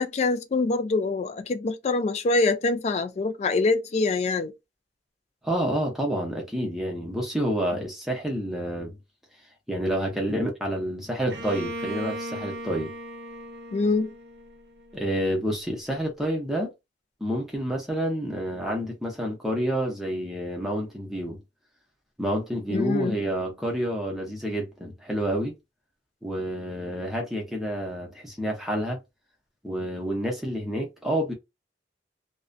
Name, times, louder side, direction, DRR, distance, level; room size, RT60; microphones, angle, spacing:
voice 1, 0.0-4.5 13.7-14.1 22.7-23.1, left 3 dB, 35° left, 0.3 m, -24 dB
voice 2, 5.4-9.0 9.7-12.9 14.9-16.7 17.2-21.4 22.2-25.5 26.2-29.0 29.6-31.3, equal, ahead, 0.7 m, -29 dB
Bowed string instrument, 11.3-15.0, equal, 60° right, 0.6 m, -37 dB
2.4 x 2.1 x 2.5 m
head